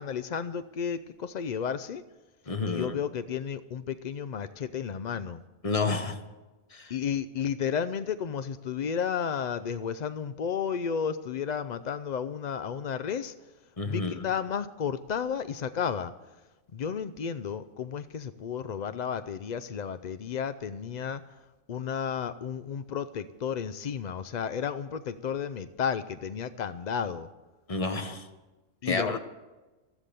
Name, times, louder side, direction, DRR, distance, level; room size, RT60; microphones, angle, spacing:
voice 1, 0.0-2.0 2.6-5.4 6.9-13.3 13.8-16.1 16.7-21.2 21.7-27.3 28.8-29.2, left 7 dB, 70° left, 12 dB, 0.4 m, -32 dB
voice 2, 2.5-2.9 5.6-6.2 6.7-6.9 13.8-14.1 27.7-28.3 28.8-29.2, left 3 dB, 30° left, 8 dB, 1.0 m, -30 dB
13.5 x 13.0 x 6.8 m, 1.1 s
omnidirectional pair, 1.4 m